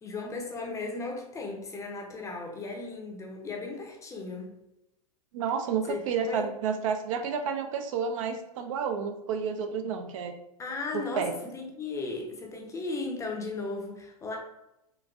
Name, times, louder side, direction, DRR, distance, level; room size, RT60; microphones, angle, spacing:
voice 1, 0.0-4.5 5.9-6.0 6.3-6.5 10.6-14.4, left 3 dB, 15° left, 1 dB, 0.6 m, -36 dB
voice 2, 5.3-10.3 10.9-11.3, right 6 dB, 55° right, 7 dB, 0.4 m, -30 dB
3.8 x 2.5 x 2.3 m, 0.89 s
hypercardioid pair, 110°, 19 cm